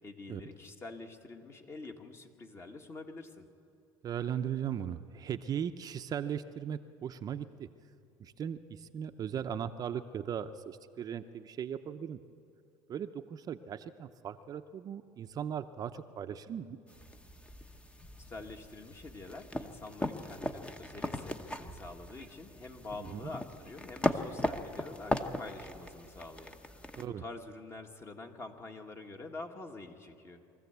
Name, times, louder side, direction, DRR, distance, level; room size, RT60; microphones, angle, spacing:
voice 1, 0.0-3.5 18.3-30.4, left 3 dB, 30° left, 4 dB, 1.8 m, -46 dB
voice 2, 4.0-7.7 8.2-12.2 12.9-16.8 23.0-23.3 27.0-27.2, right 8 dB, 40° right, 8 dB, 0.7 m, -38 dB
sound 1, 16.9-27.0, left 1 dB, 10° left, 1.0 m, -38 dB
23.0 x 14.5 x 8.2 m, 2.5 s
supercardioid pair, 105°, 10 cm